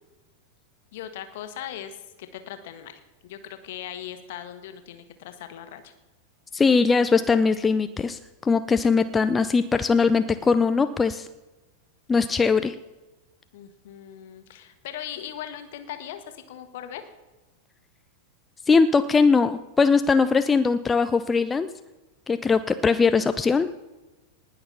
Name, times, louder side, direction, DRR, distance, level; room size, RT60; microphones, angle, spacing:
voice 1, 0.9-5.9 13.5-17.0, left 10 dB, 55° left, 9 dB, 1.5 m, -39 dB
voice 2, 6.5-11.3 12.1-12.7 18.7-21.7 22.3-23.7, left 4 dB, 15° left, 11 dB, 0.5 m, -21 dB
19.5 x 6.7 x 5.6 m, 1.1 s
figure-of-eight pair, 90°, 0 cm